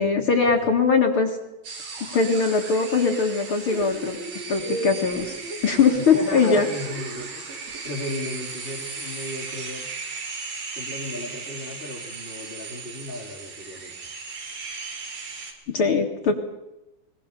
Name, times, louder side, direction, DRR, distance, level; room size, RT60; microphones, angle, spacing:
voice 1, 0.0-1.4 2.1-4.2 4.5-5.3 5.6-6.7 15.7-16.3, left 5 dB, 45° left, 2 dB, 1.9 m, -21 dB
sound 1, 1.6-15.5, right 4 dB, 65° right, 4.5 m, -36 dB
sound 2, 3.7-7.8, right 2 dB, 50° right, 2.9 m, -37 dB
voice 2, 6.1-9.9 10.7-13.9, left 2 dB, 15° left, -2 dB, 3.2 m, -35 dB
21.5 x 20.5 x 6.8 m, 0.94 s
omnidirectional pair, 4.4 m